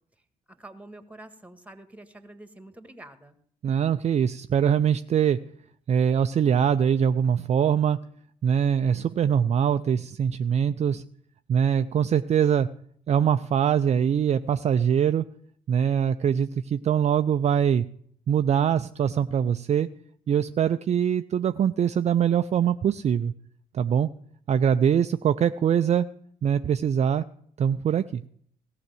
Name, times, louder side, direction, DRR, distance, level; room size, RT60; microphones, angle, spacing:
voice 1, 0.5-3.4, right 1 dB, 5° right, 10 dB, 1.6 m, -46 dB
voice 2, 3.6-5.4 5.9-8.0 8.4-11.0 11.5-12.7 13.1-15.3 15.7-17.9 18.3-19.9 20.3-23.3 23.7-24.1 24.5-26.1 26.4-27.2 27.6-28.2, right 8 dB, 35° right, 10 dB, 0.5 m, -23 dB
17.0 x 5.8 x 7.9 m, 0.64 s
figure-of-eight pair, 45°, 20 cm